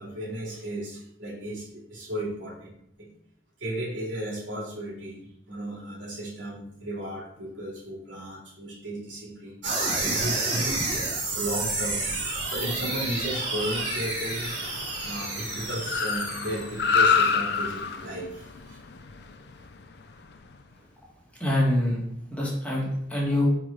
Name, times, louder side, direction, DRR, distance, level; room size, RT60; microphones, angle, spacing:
voice 1, 0.0-3.1 3.6-9.6 10.0-14.6 15.0-18.8, right 1 dB, 85° right, -5 dB, 2.6 m, -35 dB
sound 1, 9.6-17.1, right 3 dB, 70° right, 1.6 m, -30 dB
Car, 11.0-20.6, left 5 dB, 60° left, 0.5 m, -30 dB
voice 2, 21.4-23.5, left 1 dB, 5° left, -4 dB, 1.5 m, -25 dB
4.8 x 4.3 x 4.8 m, 0.73 s
head